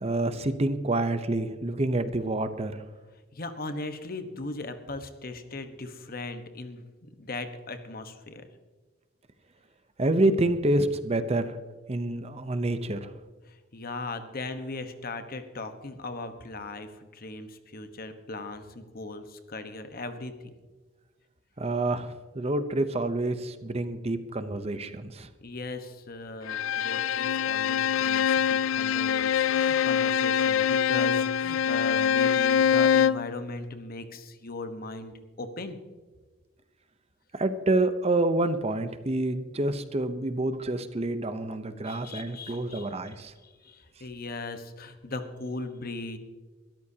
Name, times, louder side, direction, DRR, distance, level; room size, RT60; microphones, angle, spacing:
voice 1, 0.0-2.7 10.0-11.6 11.9-13.1 21.6-25.3 37.3-43.3, right 2 dB, 30° right, 10 dB, 0.7 m, -27 dB
voice 2, 3.3-8.5 13.5-20.5 25.4-35.8 41.8-42.9 43.4-46.2, left 2 dB, 50° left, 8 dB, 1.2 m, -38 dB
Bowed string instrument, 26.5-33.3, left 8 dB, 85° left, 0.4 m, -24 dB
22.0 x 13.5 x 2.8 m, 1.3 s
head